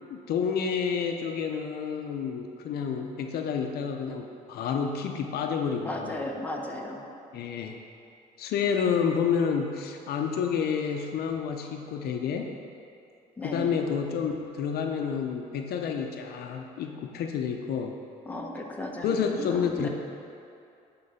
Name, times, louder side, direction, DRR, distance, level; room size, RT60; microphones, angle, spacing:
voice 1, 0.1-6.2 7.3-7.8 8.4-12.5 13.4-17.9 19.0-19.9, left 6 dB, 65° left, 3 dB, 0.7 m, -29 dB
voice 2, 5.8-7.1 13.4-13.7 18.3-19.9, left 2 dB, 10° left, 0 dB, 1.0 m, -35 dB
11.0 x 3.9 x 5.7 m, 2.6 s
cardioid pair, 110°, 17 cm